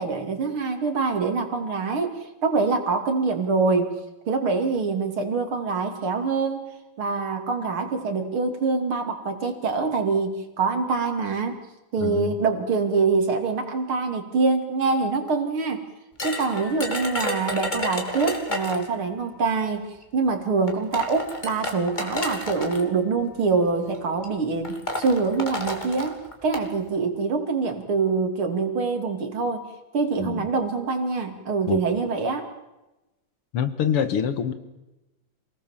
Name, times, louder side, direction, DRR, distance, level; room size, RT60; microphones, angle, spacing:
voice 1, 0.0-3.9 4.3-6.7 7.0-11.6 11.9-15.8 16.2-19.9 20.1-29.7 29.9-32.5, right 4 dB, 70° right, 5 dB, 3.5 m, -25 dB
voice 2, 12.0-12.4 30.2-30.5 31.7-31.8 33.5-34.5, left 8 dB, 85° left, 11 dB, 2.4 m, -25 dB
sound 1, 16.2-18.9 20.0-20.1 20.7-22.8 23.7-24.0 24.2-24.3 24.6-26.7, left 1 dB, 20° left, 3.2 m, -31 dB
27.5 x 18.5 x 7.3 m, 1.0 s
omnidirectional pair, 2.4 m